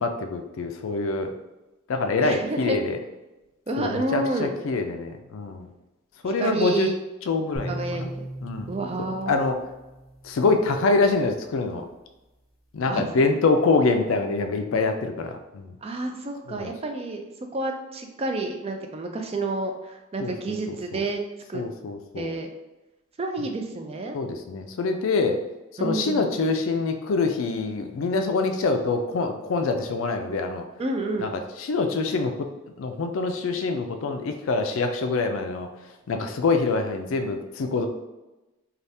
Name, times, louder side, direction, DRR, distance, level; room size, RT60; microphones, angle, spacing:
voice 1, 0.0-1.3 1.9-3.0 3.8-5.7 6.2-6.9 7.3-8.1 8.4-8.7 9.3-9.6 10.2-11.8 12.7-15.7 16.5-16.7 20.2-20.3 20.7-21.0 21.5-22.3 24.1-25.4 25.8-30.6 31.2-32.4 32.8-35.7 36.1-37.9, left 3 dB, 70° left, 5 dB, 0.4 m, -25 dB
voice 2, 2.2-2.8 3.7-4.6 6.2-7.0 7.7-8.3 8.7-9.4 12.9-13.1 15.8-17.2 17.5-21.2 21.5-21.6 22.1-22.5 23.2-24.2 25.8-26.3 30.8-31.3, right 2 dB, 30° right, 4 dB, 0.3 m, -29 dB
sound 1, 7.5-10.8, right 1 dB, 90° right, 0.8 m, -38 dB
3.3 x 2.3 x 2.7 m, 1.0 s
head